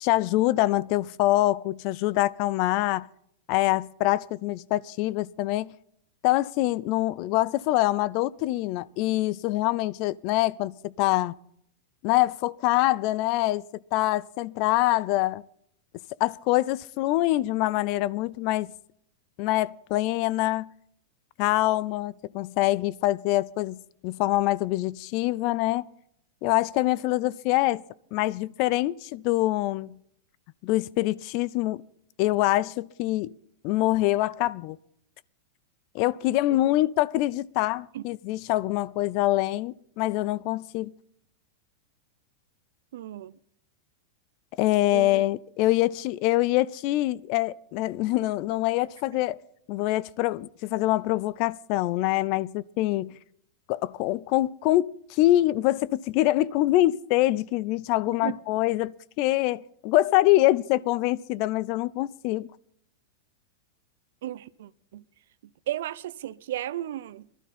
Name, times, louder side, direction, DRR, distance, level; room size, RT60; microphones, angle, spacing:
voice 1, 0.0-3.1 3.5-5.7 6.2-11.4 12.0-13.6 13.9-15.4 16.2-18.7 19.4-20.7 21.4-25.9 26.4-27.8 28.1-30.0 30.6-31.8 32.2-33.3 33.6-34.8 35.9-40.9 44.6-49.4 49.7-53.1 53.7-62.5, left 17 dB, 50° left, 0.4 m, -25 dB
voice 2, 42.9-43.3 44.9-45.1 58.1-58.3 64.2-65.0 65.7-67.3, right 13 dB, 75° right, 0.6 m, -34 dB
19.5 x 12.0 x 4.2 m
supercardioid pair, 140°, 0 cm